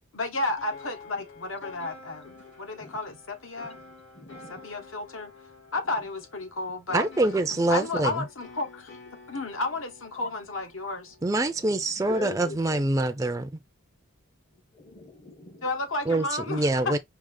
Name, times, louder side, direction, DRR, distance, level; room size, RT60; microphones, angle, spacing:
voice 1, 0.1-3.8 4.5-5.3 5.7-7.1 7.7-8.9 9.3-11.1 15.6-17.0, left 2 dB, 75° left, 1.5 m, -32 dB
sound 1, 0.6-11.7, left 4 dB, 60° left, 2.4 m, -49 dB
voice 2, 4.1-4.8 5.8-6.0 7.5-7.6 7.9-8.0 10.1-10.3 11.6-12.8 14.7-15.7, left 3 dB, 30° left, 0.8 m, -42 dB
voice 3, 6.9-8.2 11.2-13.6 16.1-17.0, right 2 dB, 15° right, 0.4 m, -25 dB
4.9 x 2.9 x 3.8 m
head